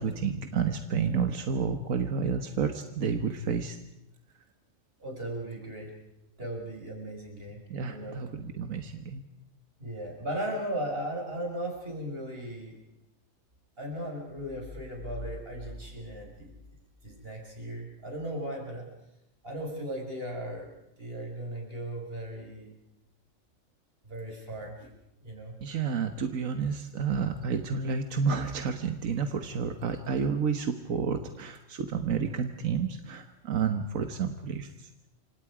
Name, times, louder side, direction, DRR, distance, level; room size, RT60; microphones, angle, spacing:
voice 1, 0.0-3.8 7.7-9.2 25.6-35.1, right 6 dB, 90° right, 7 dB, 1.6 m, -30 dB
voice 2, 5.0-5.9 6.4-7.6 7.9-8.2 9.8-12.8 13.8-16.5 17.0-18.9 19.4-20.7 21.0-22.7 24.0-24.9 25.2-25.5, right 1 dB, 45° right, 0 dB, 6.4 m, -37 dB
sound 1, 14.4-17.2, left 2 dB, 70° left, 8.4 m, -45 dB
29.0 x 25.5 x 5.0 m, 0.87 s
omnidirectional pair, 1.4 m